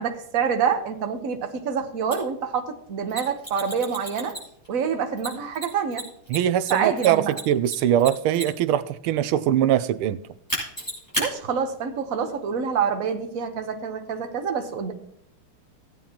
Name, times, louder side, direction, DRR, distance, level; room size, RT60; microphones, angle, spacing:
voice 1, 0.0-4.3 4.7-6.1 6.7-7.3 11.2-14.9, right 6 dB, 50° right, 1.2 m, -27 dB
Mechanisms, 2.1-2.2 3.1-4.7 5.2-8.7 10.5-11.3, right 1 dB, 10° left, 5.6 m, -31 dB
voice 2, 6.3-10.2, right 11 dB, 85° right, 1.5 m, -22 dB
17.0 x 9.0 x 2.9 m
omnidirectional pair, 2.3 m